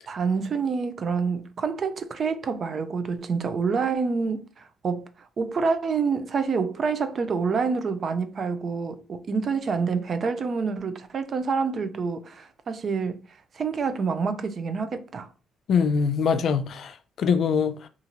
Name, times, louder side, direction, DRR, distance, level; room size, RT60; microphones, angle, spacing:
voice 1, 0.1-5.1 5.4-13.2 13.5-15.3, right 5 dB, 50° right, 0.4 m, -27 dB
voice 2, 15.7-17.9, left 6 dB, 65° left, 0.4 m, -23 dB
2.7 x 2.4 x 2.8 m
cardioid pair, 90°, 0 cm